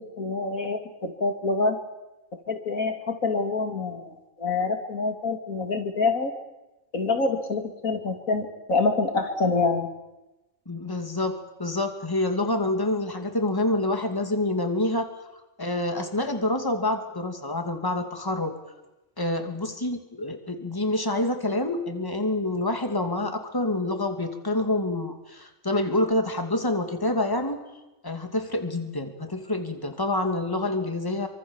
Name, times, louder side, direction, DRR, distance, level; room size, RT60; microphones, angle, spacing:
voice 1, 0.2-1.8 2.5-6.3 6.9-9.9, left 3 dB, 80° left, 5 dB, 3.3 m, -26 dB
voice 2, 10.7-15.1 15.6-18.5 19.2-27.6 28.0-31.3, left 2 dB, 15° left, 6 dB, 2.5 m, -27 dB
27.0 x 24.5 x 7.3 m, 1.0 s
omnidirectional pair, 1.4 m